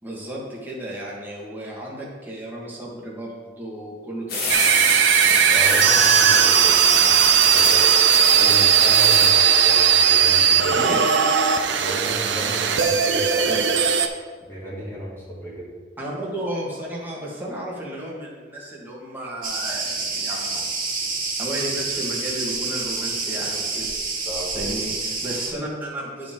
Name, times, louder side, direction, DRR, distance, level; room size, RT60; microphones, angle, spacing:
voice 1, 0.0-4.6 10.7-11.0 13.4-13.6 16.0-20.6 21.4-24.3 24.5-26.3, right 1 dB, 10° right, -4 dB, 1.6 m, -33 dB
sound 1, 4.3-9.3, left 3 dB, 55° left, 1.8 m, -27 dB
sound 2, 4.5-14.1, right 8 dB, 75° right, 0.6 m, -17 dB
voice 2, 5.5-8.0 8.3-10.8 11.8-13.7 14.4-15.7 24.2-24.7, right 1 dB, 15° left, -8 dB, 2.4 m, -33 dB
Cricket, 19.4-25.5, right 4 dB, 50° right, 1.4 m, -28 dB
10.5 x 5.0 x 3.7 m, 1.5 s
head